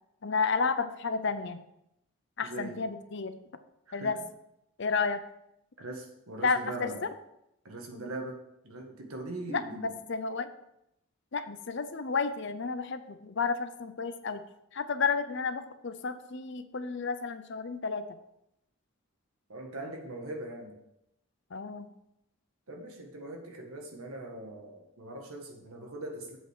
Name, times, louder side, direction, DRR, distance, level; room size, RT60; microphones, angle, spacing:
voice 1, 0.2-1.6 2.4-3.3 3.9-4.2 4.8-5.2 6.4-7.1 9.5-10.5 11.3-14.4 14.7-18.2 21.5-21.9, left 5 dB, 55° left, 10 dB, 0.6 m, -31 dB
voice 2, 2.4-2.8 3.9-4.1 5.8-7.1 7.7-10.0 19.5-20.8 22.7-26.4, right 2 dB, 80° right, 2 dB, 1.8 m, -41 dB
8.0 x 5.1 x 6.6 m, 0.81 s
head